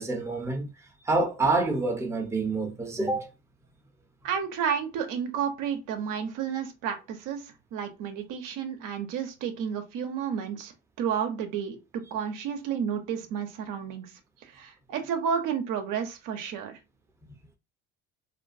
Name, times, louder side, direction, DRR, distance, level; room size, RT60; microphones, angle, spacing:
voice 1, 0.0-3.3, right 3 dB, 10° right, 0.6 m, -27 dB
voice 2, 4.2-11.8 12.1-14.1 14.4-16.8, right 7 dB, 60° right, 0.7 m, -31 dB
2.5 x 2.2 x 2.6 m
hypercardioid pair, 70°, 36 cm